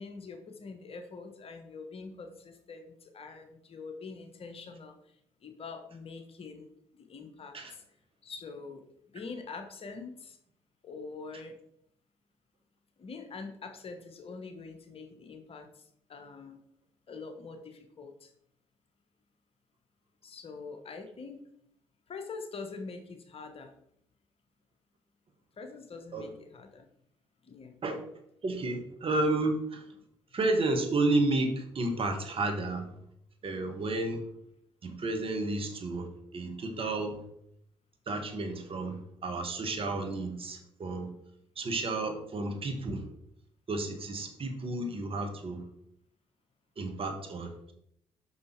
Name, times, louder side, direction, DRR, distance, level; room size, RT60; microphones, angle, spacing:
voice 1, 0.0-4.9 5.4-6.7 6.9-7.8 8.2-8.8 9.1-10.4 10.8-11.6 13.0-15.8 16.1-16.6 17.1-18.3 20.2-21.4 22.1-23.7 25.6-26.9 27.4-27.7, left 4 dB, 50° left, 6 dB, 1.2 m, -44 dB
voice 2, 28.4-29.8 30.3-32.9 33.4-34.3 34.8-37.2 38.1-41.1 41.5-43.1 43.7-45.6 46.8-47.7, right 2 dB, 45° right, 5 dB, 1.6 m, -31 dB
5.9 x 5.8 x 4.5 m, 0.72 s
hypercardioid pair, 45°, 13 cm